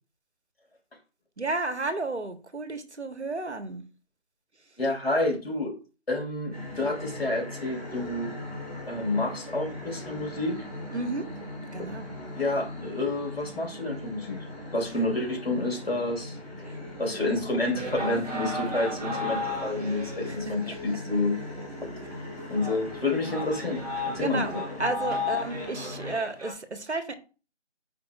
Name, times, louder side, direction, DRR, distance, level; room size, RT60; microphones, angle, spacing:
voice 1, 1.4-3.8 10.9-11.2 11.7-12.1 16.6-16.7 17.1-17.3 20.2-20.8 22.4-22.5 24.2-27.1, right 2 dB, 70° right, 1.3 m, -32 dB
voice 2, 4.8-5.7 6.1-8.4 8.9-10.6 12.4-14.5 14.7-16.7 17.0-21.4 21.8-21.9 22.5-24.6, left 2 dB, 55° left, 3.0 m, -29 dB
sound 1, 6.5-26.2, left 1 dB, 5° left, 2.9 m, -40 dB
sound 2, 17.7-20.9 21.4-21.5 22.0-22.1 22.5-26.5, left 2 dB, 35° right, 3.3 m, -35 dB
9.4 x 5.0 x 2.4 m
figure-of-eight pair, 170°, 36 cm